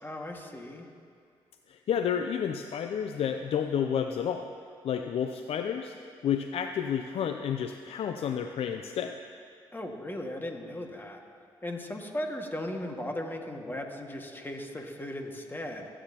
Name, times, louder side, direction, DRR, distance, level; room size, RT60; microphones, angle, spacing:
voice 1, 0.0-0.9 9.7-11.2 11.6-15.9, left 1 dB, 20° left, 2 dB, 1.9 m, -37 dB
voice 2, 1.7-4.5 4.8-5.9 6.2-9.2, left 8 dB, 65° left, 6 dB, 0.6 m, -30 dB
23.5 x 9.0 x 3.0 m, 2.3 s
hypercardioid pair, 50°, 11 cm